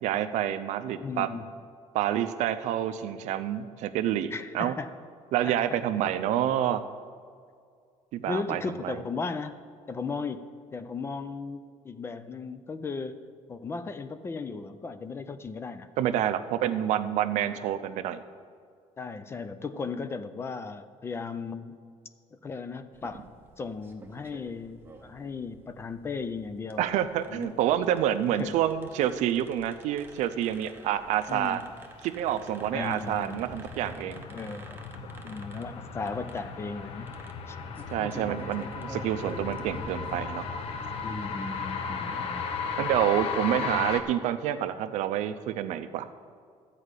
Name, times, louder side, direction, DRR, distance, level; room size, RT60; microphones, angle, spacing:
voice 1, 0.0-1.3 1.9-4.7 5.3-6.8 8.1-9.0 16.0-18.2 26.8-31.6 32.0-34.2 37.9-40.4 42.8-46.1, right 11 dB, 70° right, 10 dB, 0.6 m, -28 dB
voice 2, 1.0-1.4 4.3-4.9 5.4-5.8 6.4-6.6 8.3-9.6 9.9-13.2 13.5-15.9 16.7-16.9 17.6-17.7 19.0-21.8 22.4-23.3 23.6-26.9 27.3-27.6 28.4-28.6 31.3-31.6 32.7-33.4 34.3-34.8 35.2-37.1 37.5-38.2 38.4-38.7 41.0-42.4 43.6-43.9, left 4 dB, 20° left, 11 dB, 0.4 m, -36 dB
sound 1, 22.9-40.2, right 3 dB, 15° right, 0.7 m, -50 dB
sound 2, 31.2-44.0, left 5 dB, 50° left, 0.8 m, -36 dB
13.0 x 4.9 x 8.2 m, 2.2 s
cardioid pair, 175°, 12 cm